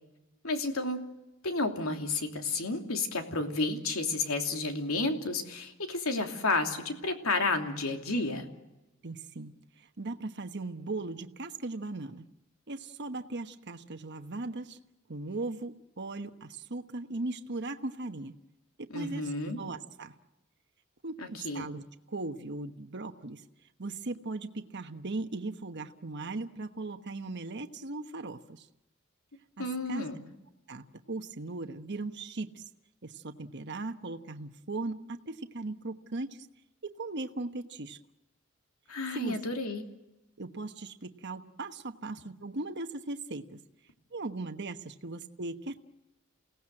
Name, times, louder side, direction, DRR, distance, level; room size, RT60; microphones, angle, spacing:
voice 1, 0.4-1.0 1.4-8.5 18.9-19.6 21.2-21.7 29.6-30.2 38.9-39.8, left 2 dB, 90° left, 4 dB, 3.0 m, -31 dB
voice 2, 9.0-12.3 12.7-14.8 15.1-18.3 18.8-20.1 21.0-23.4 23.8-28.7 29.6-30.0 30.7-32.6 33.0-36.5 36.8-38.0 39.1-39.4 40.4-43.6 44.1-45.8, right 2 dB, 55° right, 7 dB, 1.2 m, -38 dB
29.0 x 18.0 x 7.7 m, 0.97 s
head